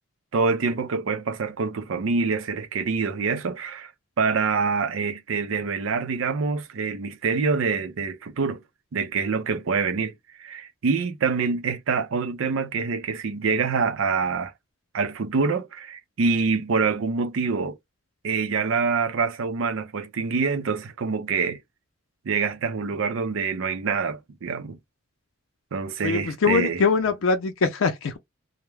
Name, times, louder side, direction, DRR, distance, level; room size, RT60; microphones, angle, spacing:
voice 1, 0.3-3.9 4.2-8.6 8.9-10.1 10.4-14.5 14.9-17.8 18.2-21.6 22.2-24.8 25.7-26.8, right 5 dB, 80° right, 0.5 m, -25 dB
voice 2, 26.0-28.2, left 5 dB, 90° left, 0.5 m, -23 dB
2.2 x 2.1 x 3.1 m
head